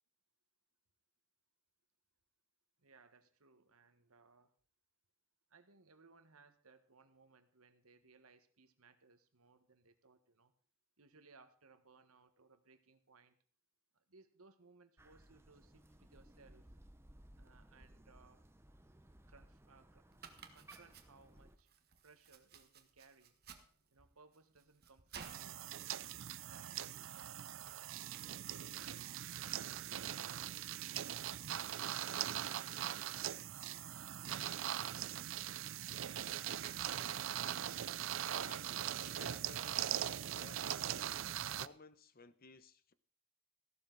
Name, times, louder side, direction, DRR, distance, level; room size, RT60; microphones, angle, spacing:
voice 1, 2.8-4.5 5.5-10.5 11.0-13.4 13.9-16.7 17.4-18.4 19.3-20.1 20.5-21.7 22.0-23.4 23.9-27.9 28.4-29.0 29.3-31.0 31.6-34.1, right 4 dB, 80° right, 9 dB, 1.5 m, -65 dB
Crow, 15.0-21.6, right 1 dB, 10° right, 0.8 m, -61 dB
Domestic sounds home sounds, 20.1-38.6, right 6 dB, 45° right, 1.5 m, -62 dB
sound 1, 25.2-41.7, right 11 dB, 60° right, 0.5 m, -41 dB
voice 2, 38.4-41.2 41.6-42.9, left 3 dB, 40° left, 14 dB, 0.8 m, -58 dB
15.0 x 12.0 x 4.0 m, 0.44 s
head